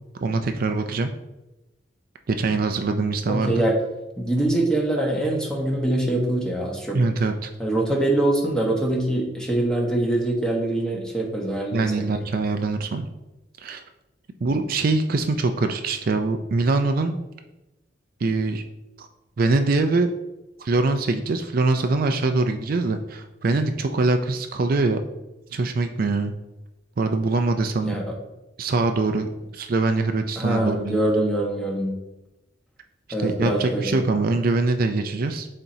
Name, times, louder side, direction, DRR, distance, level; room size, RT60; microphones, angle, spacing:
voice 1, 0.2-1.1 2.3-3.5 6.9-7.5 11.7-13.1 13.6-13.8 14.4-17.2 18.2-18.6 19.0-19.1 19.4-20.1 20.6-25.0 25.5-26.3 27.0-27.9 28.6-31.0 33.2-35.5, right 3 dB, 55° right, 6 dB, 0.4 m, -23 dB
voice 2, 3.3-3.7 4.2-7.0 7.6-12.1 27.8-28.0 30.4-32.0 33.1-34.0, right 1 dB, 5° left, -1 dB, 1.3 m, -24 dB
11.0 x 4.4 x 2.7 m, 0.98 s
head